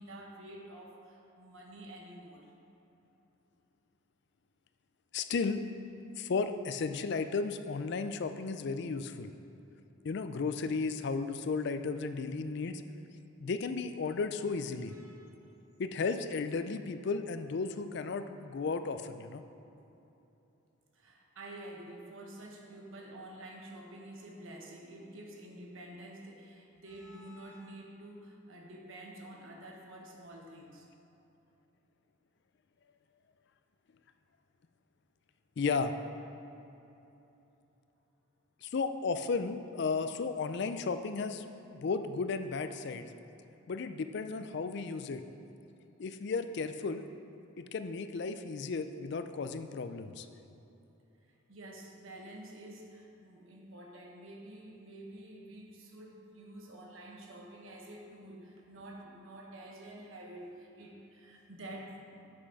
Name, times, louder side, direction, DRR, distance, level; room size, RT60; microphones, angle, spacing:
voice 1, 0.0-2.5 14.9-15.4 20.9-30.9 51.2-62.2, right 1 dB, 70° right, 0 dB, 1.2 m, -49 dB
voice 2, 5.1-5.6 6.2-9.3 10.0-12.8 13.4-14.9 15.8-19.4 35.6-35.9 38.6-41.5 41.7-43.1 43.7-45.2 46.0-47.1 47.6-50.3, left 4 dB, 55° left, 10 dB, 0.4 m, -34 dB
7.7 x 6.3 x 4.8 m, 3.0 s
head